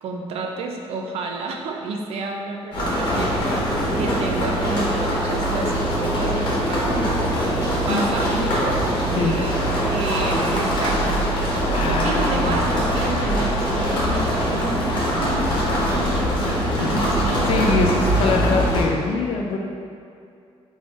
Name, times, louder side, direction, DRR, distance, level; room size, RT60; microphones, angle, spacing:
voice 1, 0.0-9.6 9.9-18.7, right 3 dB, 65° right, 2 dB, 0.4 m, -31 dB
sound 1, 2.7-18.8, equal, 45° left, 1.1 m, -22 dB
voice 2, 11.7-12.6 16.8-19.6, left 3 dB, 60° left, 2 dB, 0.4 m, -24 dB
4.0 x 3.2 x 2.4 m, 2.4 s
cardioid pair, 175°, 11 cm